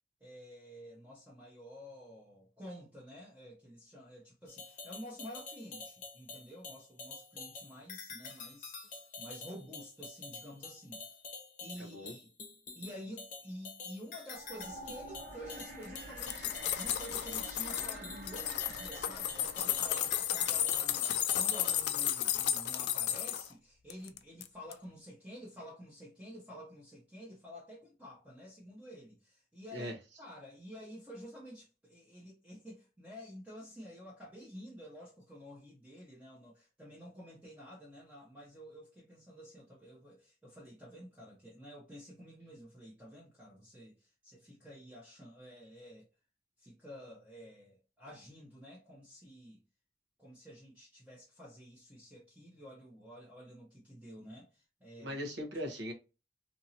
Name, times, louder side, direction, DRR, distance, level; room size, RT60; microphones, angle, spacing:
voice 1, 0.2-8.9 9.2-11.2 11.6-12.3 12.7-29.9 30.2-46.1 46.6-49.6 50.2-55.2, equal, 10° right, 0.8 m, -50 dB
sound 1, 4.5-21.8, left 4 dB, 45° left, 0.8 m, -47 dB
voice 2, 11.8-12.1 29.7-29.9 55.0-55.9, equal, 90° right, 1.0 m, -39 dB
sound 2, 14.3-21.4, right 1 dB, 45° right, 0.7 m, -49 dB
sound 3, 15.8-18.0 18.3-23.5 23.9-24.5 24.7-24.8, left 11 dB, 70° left, 0.3 m, -33 dB
2.9 x 2.6 x 2.7 m
head